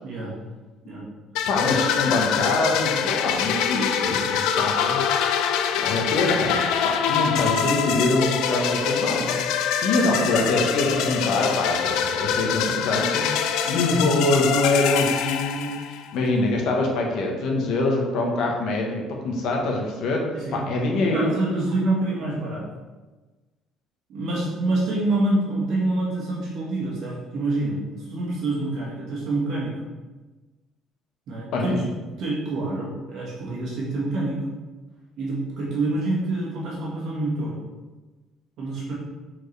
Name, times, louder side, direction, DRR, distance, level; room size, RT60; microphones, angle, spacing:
voice 1, 0.0-0.3 0.9-1.1 20.3-20.6 21.0-22.7 24.1-29.7 31.3-31.8 32.2-34.4 35.2-37.6 38.6-38.9, right 2 dB, 50° right, -5 dB, 1.6 m, -26 dB
sound 1, 1.3-16.1, left 7 dB, 75° left, 0.4 m, -24 dB
voice 2, 1.5-5.1 5.8-20.2 20.5-21.3 31.5-31.8, left 2 dB, 55° left, 0 dB, 1.3 m, -24 dB
6.6 x 4.6 x 3.4 m, 1.2 s
cardioid pair, 180°, 0 cm